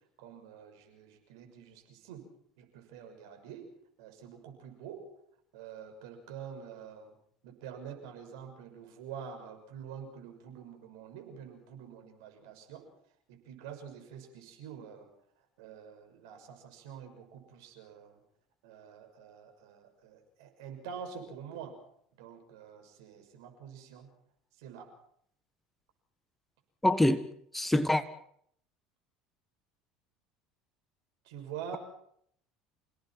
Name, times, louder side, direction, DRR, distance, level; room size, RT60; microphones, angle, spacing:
voice 1, 0.2-2.3 2.6-3.6 4.0-5.1 5.5-7.1 7.4-12.9 13.3-15.1 15.6-18.2 18.6-21.8 22.1-24.1 24.6-24.9 31.2-31.8, right 7 dB, 70° right, 6.3 m, -46 dB
voice 2, 26.8-27.2 27.5-28.0, left 1 dB, 5° left, 1.6 m, -25 dB
28.5 x 18.0 x 6.0 m
hypercardioid pair, 70°, 2 cm